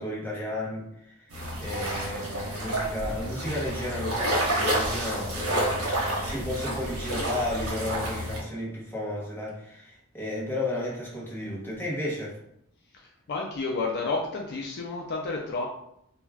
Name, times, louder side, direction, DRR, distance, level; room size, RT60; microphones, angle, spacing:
voice 1, 0.0-1.3 1.6-12.4, left 1 dB, 10° left, -6 dB, 0.8 m, -33 dB
sound 1, 1.3-8.4, right 1 dB, 70° right, 0.9 m, -29 dB
voice 2, 13.3-15.7, left 3 dB, 50° left, 0 dB, 0.3 m, -30 dB
2.3 x 2.2 x 3.2 m, 0.76 s
head